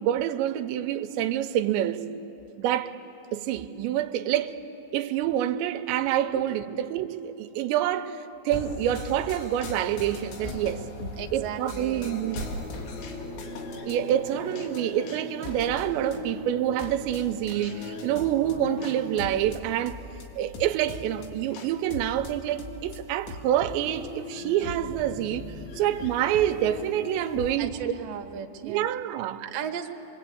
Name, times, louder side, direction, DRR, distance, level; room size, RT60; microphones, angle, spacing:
voice 1, 0.0-2.0 2.6-2.9 3.3-4.6 4.9-12.4 13.8-20.0 20.4-27.7 28.6-29.4, right 11 dB, 80° right, 3.0 m, -27 dB
sound 1, 8.5-9.9 10.4-16.2, left 1 dB, 65° left, 7.2 m, -42 dB
sound 2, 8.6-27.6, left 4 dB, 85° left, 4.3 m, -40 dB
voice 2, 11.2-12.2 27.6-28.9 29.4-29.9, right 8 dB, 65° right, 2.5 m, -36 dB
sound 3, 11.9-18.9, equal, 35° left, 8.8 m, -40 dB
25.0 x 24.0 x 8.6 m
omnidirectional pair, 5.3 m